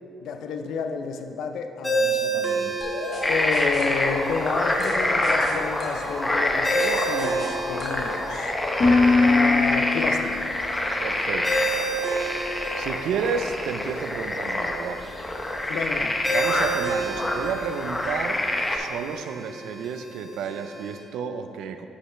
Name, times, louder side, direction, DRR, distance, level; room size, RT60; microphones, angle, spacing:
voice 1, 0.2-2.8 3.3-8.5 9.2-10.6 15.7-16.2, left 5 dB, 75° left, 6 dB, 0.4 m, -30 dB
Ringtone, 1.8-21.0, right 2 dB, ahead, 1.4 m, -32 dB
sound 1, 2.8-10.6, left 3 dB, 55° left, 1.6 m, -26 dB
sound 2, 3.2-18.8, left 1 dB, 15° left, 0.7 m, -27 dB
voice 2, 11.0-11.7 12.8-15.0 16.3-18.4 18.7-21.9, right 6 dB, 85° right, 8 dB, 0.4 m, -31 dB
9.8 x 5.4 x 3.1 m, 2.6 s
cardioid pair, 90°, 0 cm